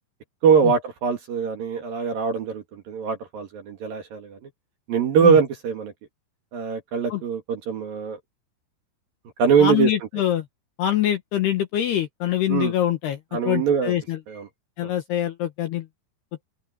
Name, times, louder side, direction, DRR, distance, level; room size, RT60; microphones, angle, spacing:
voice 1, 0.4-4.4 4.9-5.9 6.5-8.2 9.4-9.9 12.5-12.7 13.3-14.0 14.3-14.5 14.8-14.9, right 6 dB, 55° right, 3.2 m, -22 dB
voice 2, 9.6-10.5 10.8-13.2 13.5-14.2 14.8-15.9, left 12 dB, 70° left, 2.8 m, -24 dB
open air
omnidirectional pair, 5.9 m